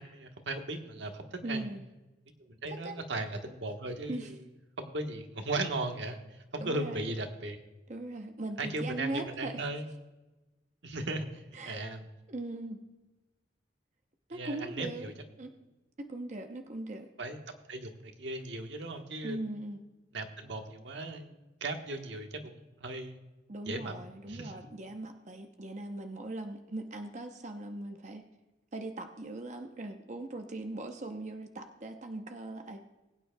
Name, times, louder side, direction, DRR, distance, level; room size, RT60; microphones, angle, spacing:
voice 1, 0.0-1.7 2.4-4.3 4.8-6.2 6.5-7.6 8.6-9.9 10.8-12.0 14.3-15.1 17.2-17.4 17.7-19.4 20.1-23.2 23.6-23.9 24.3-24.5, right 2 dB, 85° right, 4 dB, 1.3 m, -37 dB
voice 2, 1.4-1.8 2.7-3.0 4.1-4.3 6.6-7.1 7.9-9.6 11.5-11.8 12.3-12.8 14.3-15.1 15.4-15.5 16.0-17.1 19.2-19.8 23.5-28.2 28.7-32.8, right 2 dB, 40° right, 5 dB, 0.7 m, -39 dB
21.0 x 9.1 x 2.3 m, 1.1 s
head